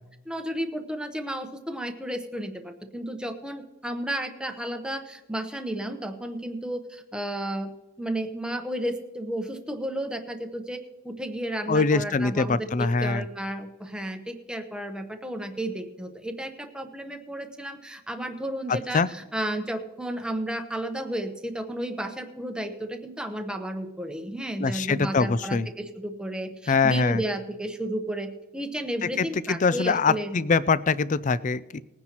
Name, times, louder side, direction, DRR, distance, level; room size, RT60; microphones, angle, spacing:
voice 1, 0.3-7.7 8.0-30.4, right 1 dB, 5° right, 5 dB, 0.9 m, -33 dB
voice 2, 11.7-13.2 18.7-19.1 24.6-25.7 26.7-27.2 29.2-31.8, left 4 dB, 35° left, 17 dB, 0.4 m, -23 dB
20.5 x 9.8 x 3.0 m, 1.1 s
head